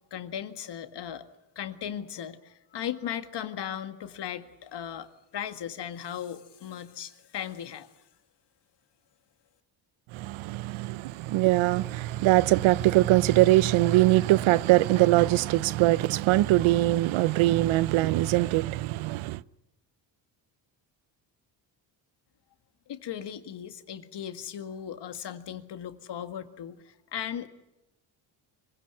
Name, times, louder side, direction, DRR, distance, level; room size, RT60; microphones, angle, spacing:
voice 1, 0.1-1.3 1.6-7.9 22.9-27.5, left 9 dB, 55° left, 1.9 m, -37 dB
voice 2, 10.1-19.4, right 17 dB, 75° right, 0.8 m, -22 dB
24.5 x 17.0 x 9.7 m
supercardioid pair, 75°, 48 cm